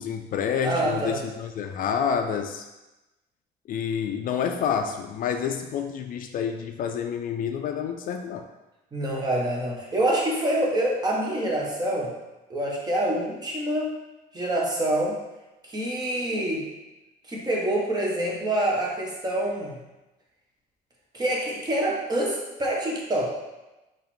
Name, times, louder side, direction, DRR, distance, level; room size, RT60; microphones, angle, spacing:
voice 1, 0.0-2.6 3.7-8.5, left 7 dB, 55° left, 6 dB, 0.4 m, -28 dB
voice 2, 0.6-1.2 8.9-12.1 12.5-13.9 14.3-15.2 15.7-16.6 17.3-19.8 21.1-23.3, right 1 dB, 25° right, -2 dB, 1.2 m, -26 dB
3.9 x 3.1 x 4.3 m, 1.0 s
cardioid pair, 110°, 17 cm